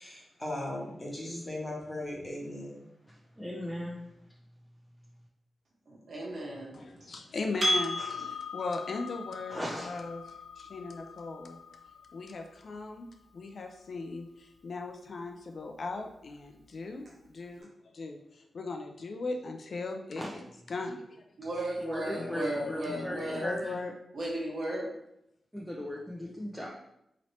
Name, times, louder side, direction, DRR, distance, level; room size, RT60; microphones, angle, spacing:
voice 1, 0.0-2.8, left 1 dB, 35° left, -3 dB, 1.1 m, -38 dB
voice 2, 3.1-4.0 8.0-8.2 9.5-9.9 20.2-20.3 21.8-23.7 25.5-26.7, equal, ahead, -4 dB, 0.5 m, -37 dB
voice 3, 5.9-6.8 21.4-23.4 24.1-24.9, right 1 dB, 65° right, -3 dB, 1.1 m, -35 dB
voice 4, 6.7-11.8 12.1-13.1 13.3-17.7 17.9-21.2 22.1-23.9, left 3 dB, 60° left, 4 dB, 0.4 m, -38 dB
Percussion, 7.6-12.4, left 1 dB, 45° right, 1.0 m, -35 dB
2.9 x 2.7 x 3.1 m, 0.80 s
cardioid pair, 65°, 0 cm